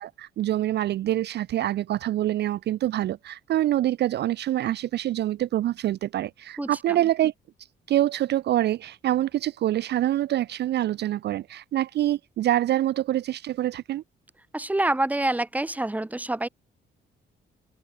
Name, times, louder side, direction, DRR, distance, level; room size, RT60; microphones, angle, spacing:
voice 1, 0.0-7.3 7.9-14.0, right 13 dB, 60° right, 0.4 m, -25 dB
voice 2, 14.5-16.5, right 1 dB, 10° right, 1.0 m, -26 dB
cardioid pair, 90°, 20 cm